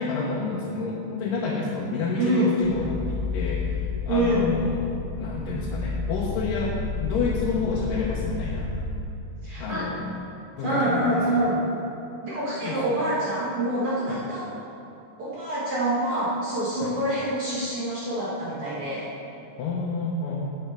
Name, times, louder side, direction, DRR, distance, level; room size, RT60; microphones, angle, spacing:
voice 1, 0.0-4.9 5.2-6.7 7.0-8.8 9.6-10.0 10.5-11.4 12.6-12.8 14.1-14.2 16.8-17.0 19.6-20.4, left 4 dB, 85° left, -4 dB, 2.7 m, -29 dB
voice 2, 2.2-2.5 4.1-4.5 9.4-9.9 10.6-11.6 12.2-14.5 15.2-19.1, right 1 dB, 50° right, -8 dB, 2.1 m, -26 dB
sound 1, 2.6-9.0, left 4 dB, 15° right, 0.3 m, -31 dB
11.5 x 8.2 x 4.6 m, 2.9 s
omnidirectional pair, 3.7 m